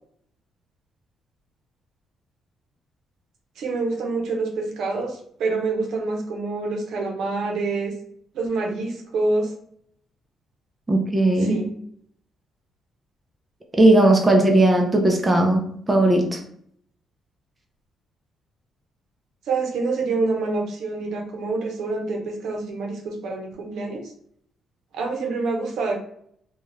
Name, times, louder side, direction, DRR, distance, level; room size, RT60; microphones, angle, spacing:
voice 1, 3.6-7.9 8.3-9.5 11.4-11.7 19.5-24.0 24.9-25.9, right 3 dB, 75° right, 1 dB, 0.7 m, -26 dB
voice 2, 10.9-11.6 13.7-15.6 15.9-16.4, right 1 dB, 20° right, 1 dB, 0.6 m, -17 dB
2.4 x 2.3 x 3.1 m, 0.66 s
cardioid pair, 90°, 0 cm